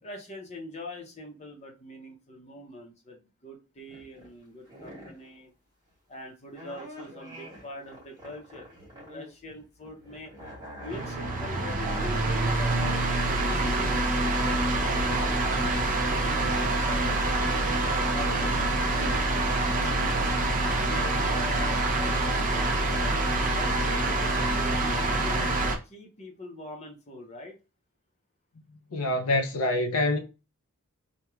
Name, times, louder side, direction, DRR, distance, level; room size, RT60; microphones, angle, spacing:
voice 1, 0.0-5.5 6.1-8.7 9.0-10.3 10.8-17.4 18.1-20.2 20.9-23.2 23.5-25.4 25.8-27.6, left 1 dB, 30° left, 0.6 m, -44 dB
sound 1, 3.8-4.3 4.7-5.3 6.5-9.3 9.6-12.8 13.2-19.2 19.6-19.7, equal, 15° right, 1.4 m, -44 dB
sound 2, 10.9-25.8, right 2 dB, 35° right, 0.5 m, -26 dB
voice 2, 28.9-30.2, left 2 dB, 75° left, 0.5 m, -25 dB
3.0 x 2.1 x 2.3 m
head